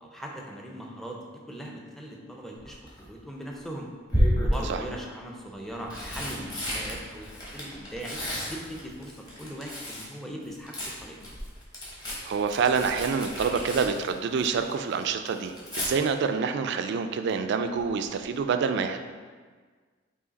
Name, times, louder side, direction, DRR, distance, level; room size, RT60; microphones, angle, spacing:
voice 1, 0.0-3.9 4.4-7.3 7.5-11.2, right 1 dB, ahead, -1 dB, 0.5 m, -40 dB
Tearing, 2.6-3.1 4.1-4.8 5.6-10.1 10.4-14.7 15.0-15.9 17.8-18.0 18.3-18.4, equal, 20° left, 1.0 m, -31 dB
voice 2, 12.2-19.0, right 5 dB, 60° right, 8 dB, 0.3 m, -27 dB
4.8 x 2.8 x 4.0 m, 1.5 s
head